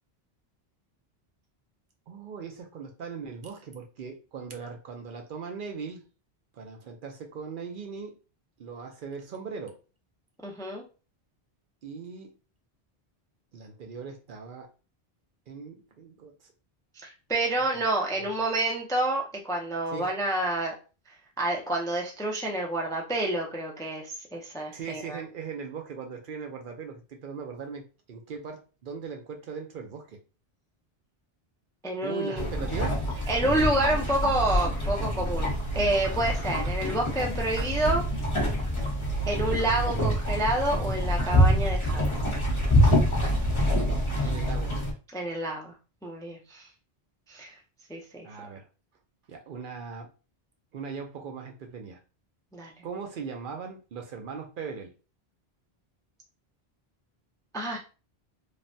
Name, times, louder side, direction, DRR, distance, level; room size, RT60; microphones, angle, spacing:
voice 1, 2.1-6.0 6.5-8.1 8.6-9.8 11.8-12.3 13.5-14.7 15.5-16.5 17.7-17.8 18.2-18.3 19.9-20.1 24.7-30.2 32.0-33.3 44.2-44.8 48.2-48.7 49.3-50.1 50.7-52.0 52.8-54.9, right 5 dB, 60° right, 3 dB, 0.7 m, -39 dB
voice 2, 10.4-10.8 17.0-20.7 21.4-25.2 31.8-32.5 33.3-38.0 39.3-42.1 45.1-45.7 46.0-46.7 47.3-47.5 47.9-48.3 52.5-52.7 57.5-57.8, right 1 dB, 5° left, 0 dB, 0.3 m, -28 dB
sound 1, 32.4-44.9, equal, 30° left, 1.0 m, -26 dB
3.2 x 2.1 x 2.6 m, 0.33 s
omnidirectional pair, 1.0 m